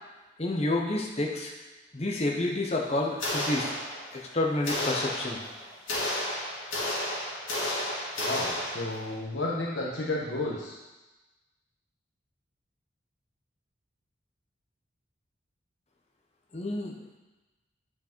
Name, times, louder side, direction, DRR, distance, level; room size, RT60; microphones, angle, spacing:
voice 1, 0.4-1.5 1.9-3.7 4.1-5.4 16.5-17.2, left 2 dB, 35° left, 0 dB, 0.9 m, -29 dB
sound 1, 3.2-4.3 4.6-9.1, left 1 dB, 90° left, 2.2 m, -32 dB
voice 2, 8.2-10.7, left 2 dB, 70° left, -3 dB, 1.0 m, -32 dB
8.2 x 4.9 x 4.5 m, 1.1 s
head